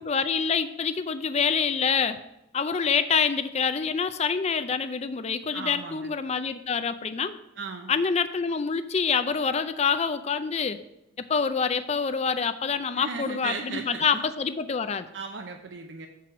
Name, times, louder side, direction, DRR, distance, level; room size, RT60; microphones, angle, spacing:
voice 1, 0.0-2.2 2.5-7.3 7.9-10.8 11.2-15.1, left 6 dB, 35° left, 11 dB, 0.4 m, -26 dB
voice 2, 5.5-6.1 7.6-7.9 12.9-14.2 15.1-16.1, right 4 dB, 65° right, 4 dB, 0.6 m, -36 dB
7.6 x 4.8 x 5.8 m, 0.85 s
head